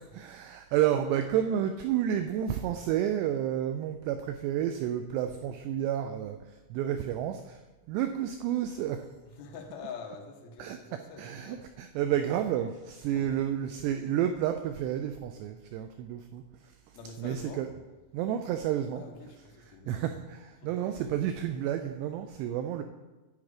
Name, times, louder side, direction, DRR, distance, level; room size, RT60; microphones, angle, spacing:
voice 1, 0.0-7.6 7.9-9.1 10.6-10.8 11.2-17.7 18.1-19.0 19.9-22.8, right 10 dB, 90° right, 7 dB, 2.4 m, -31 dB
voice 2, 9.4-11.6 13.1-13.4 16.9-17.6 18.9-20.0 20.6-20.9, left 5 dB, 90° left, 1 dB, 1.6 m, -45 dB
10.5 x 8.6 x 5.0 m, 1.2 s
omnidirectional pair, 5.4 m